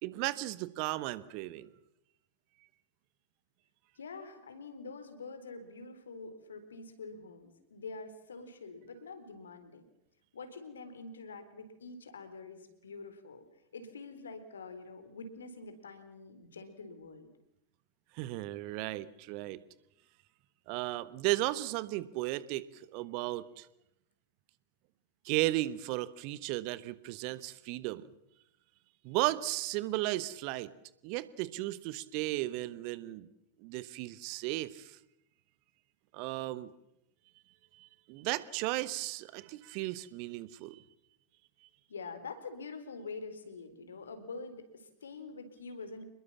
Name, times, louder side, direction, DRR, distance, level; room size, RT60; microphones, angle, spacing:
voice 1, 0.0-1.7 18.1-19.6 20.7-23.7 25.2-28.1 29.0-30.7 31.0-33.3 33.6-35.0 36.1-36.7 37.8-40.8, right 18 dB, 45° right, 16 dB, 1.3 m, -35 dB
voice 2, 4.0-9.8 10.3-13.4 13.7-17.3 41.9-46.1, left 4 dB, 70° left, 10 dB, 3.8 m, -46 dB
27.5 x 21.5 x 7.3 m, 0.83 s
figure-of-eight pair, 90°, 0 cm